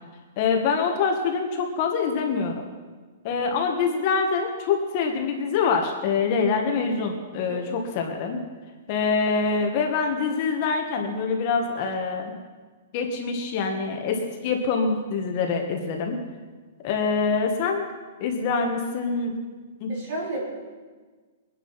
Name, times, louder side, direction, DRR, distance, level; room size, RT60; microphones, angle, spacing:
voice 1, 0.4-2.6 3.2-8.4 8.9-12.4 12.9-16.2 16.8-17.9 18.2-19.3 19.8-19.9, left 5 dB, 35° left, 3 dB, 1.6 m, -25 dB
voice 2, 19.9-20.4, right 2 dB, 40° right, -4 dB, 6.1 m, -32 dB
23.0 x 10.0 x 5.8 m, 1.4 s
hypercardioid pair, 170°, 0 cm